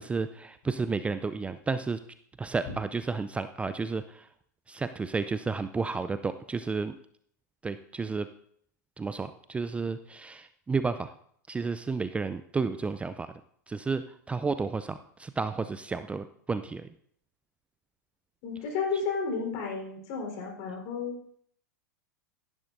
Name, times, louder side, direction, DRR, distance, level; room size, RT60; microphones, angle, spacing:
voice 1, 0.0-2.0 2.4-4.3 4.7-7.0 7.6-8.3 9.0-11.1 11.5-13.3 13.7-16.9, right 4 dB, 10° right, 12 dB, 0.4 m, -32 dB
voice 2, 18.4-21.4, left 5 dB, 50° left, 2 dB, 4.1 m, -32 dB
16.0 x 10.5 x 2.6 m, 0.64 s
hypercardioid pair, 95°, 10 cm